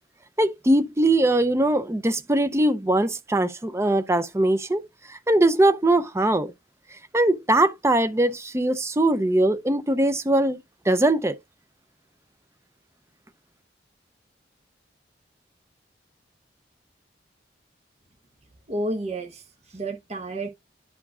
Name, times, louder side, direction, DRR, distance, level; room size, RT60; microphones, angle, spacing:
voice 1, 0.4-4.8 5.1-6.5 7.1-10.6 10.9-11.3, right 1 dB, 15° right, 0.5 m, -21 dB
voice 2, 18.7-20.5, right 1 dB, 35° right, 1.0 m, -31 dB
11.0 x 4.7 x 2.4 m
head